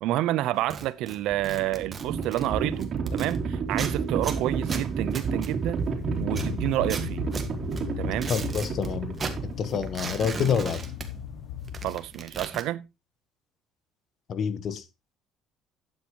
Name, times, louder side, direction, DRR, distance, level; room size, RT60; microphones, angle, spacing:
voice 1, 0.0-5.8 6.2-7.2 8.0-8.3 11.8-12.8, right 15 dB, 75° right, 0.8 m, -29 dB
sound 1, 0.6-3.4 3.7-5.9 6.3-8.9 9.1-11.4 11.6-12.6, right 5 dB, 30° right, 1.7 m, -37 dB
Livestock farm animals working animals, 1.2-10.3, right 5 dB, 45° right, 3.2 m, -31 dB
sound 2, 5.8-12.3, left 9 dB, 80° left, 0.9 m, -38 dB
voice 2, 8.3-9.2 9.6-10.9 14.3-14.8, left 7 dB, 50° left, 1.2 m, -27 dB
12.0 x 9.0 x 3.1 m
cardioid pair, 110°, 0 cm